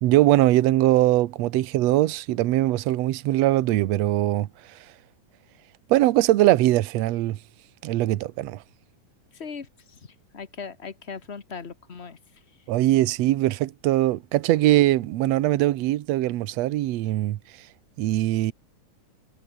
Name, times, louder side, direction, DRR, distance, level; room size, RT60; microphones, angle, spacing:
voice 1, 0.0-4.5 5.9-7.4 7.8-8.6 12.7-17.4 18.0-18.5, right 15 dB, 65° right, 1.8 m, -21 dB
voice 2, 9.3-12.2, left 5 dB, 55° left, 0.7 m, -39 dB
omnidirectional pair, 3.7 m